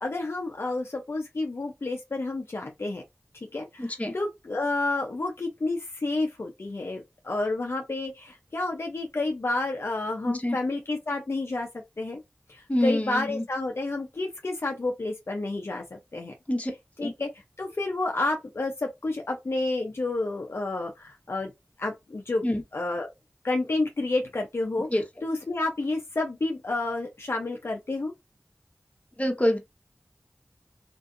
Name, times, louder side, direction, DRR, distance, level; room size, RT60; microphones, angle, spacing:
voice 1, 0.0-3.0 3.5-3.9 4.1-11.7 12.0-12.2 12.5-16.3 17.0-17.3 17.6-21.5 21.8-22.5 22.7-23.1 23.4-24.9 25.2-28.1, left 2 dB, 70° left, 0.6 m, -30 dB
voice 2, 3.8-4.1 10.2-10.6 12.7-13.4 16.5-16.7 17.0-17.1 22.4-22.6 24.9-25.0 29.2-29.6, left 1 dB, 30° left, 1.0 m, -26 dB
3.0 x 2.6 x 2.5 m
wide cardioid pair, 40°, 4 cm